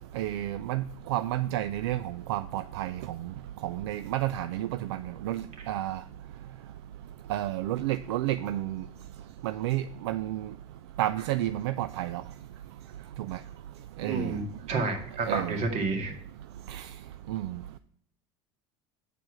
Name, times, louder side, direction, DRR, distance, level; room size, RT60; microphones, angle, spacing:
voice 1, 0.1-3.2 3.6-6.0 7.3-8.8 9.4-10.5 11.0-12.2 13.3-13.4 14.0-14.3 15.2-15.6 16.7-16.9 17.3-17.6, right 14 dB, 80° right, 12 dB, 0.4 m, -31 dB
voice 2, 14.0-16.1, right 3 dB, 55° right, 4 dB, 2.1 m, -30 dB
8.1 x 4.5 x 6.2 m, 0.64 s
hypercardioid pair, 90°, 14 cm